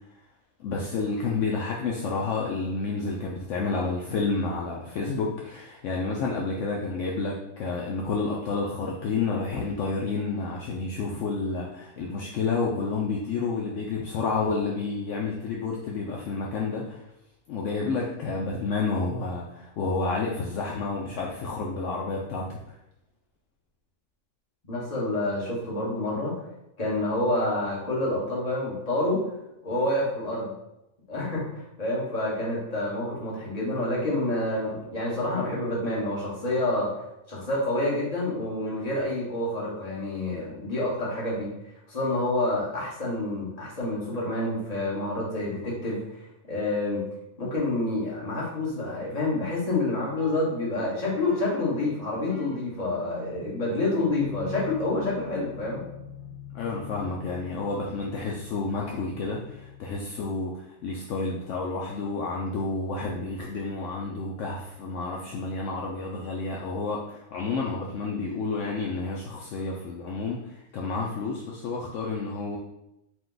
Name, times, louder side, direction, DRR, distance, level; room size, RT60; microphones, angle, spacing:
voice 1, 0.6-17.0 17.5-22.6 56.5-72.6, left 3 dB, 70° left, -2 dB, 0.9 m, -30 dB
voice 2, 24.7-26.3 26.8-29.2 29.6-30.5 31.1-36.9 37.3-41.5 41.9-46.0 46.5-47.0 47.4-55.8, left 2 dB, 30° left, -5 dB, 1.3 m, -28 dB
sound 1, 50.2-59.9, left 4 dB, 60° right, 1.3 m, -43 dB
4.7 x 2.2 x 3.8 m, 0.88 s
omnidirectional pair, 1.4 m